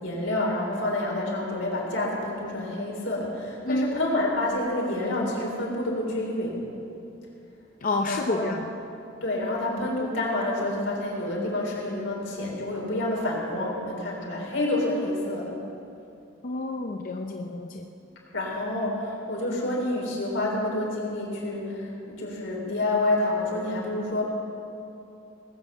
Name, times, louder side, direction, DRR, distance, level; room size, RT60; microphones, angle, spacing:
voice 1, 0.0-6.6 8.1-8.5 9.2-15.5 18.3-24.2, left 1 dB, 80° left, -2 dB, 3.7 m, -28 dB
voice 2, 7.8-8.7 16.4-17.9, left 2 dB, 45° left, 2 dB, 0.6 m, -29 dB
19.5 x 7.5 x 7.0 m, 2.8 s
head